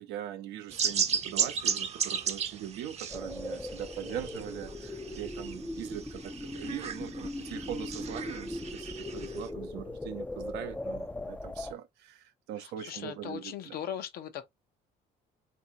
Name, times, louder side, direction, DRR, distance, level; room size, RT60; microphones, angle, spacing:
voice 1, 0.0-13.8, right 11 dB, 85° right, 0.6 m, -41 dB
sound 1, 0.7-9.5, right 7 dB, 40° right, 0.6 m, -35 dB
sound 2, 3.1-11.7, left 2 dB, 10° left, 0.3 m, -39 dB
voice 2, 12.6-14.5, left 9 dB, 65° left, 0.7 m, -39 dB
3.5 x 2.7 x 2.7 m
cardioid pair, 110°, 17 cm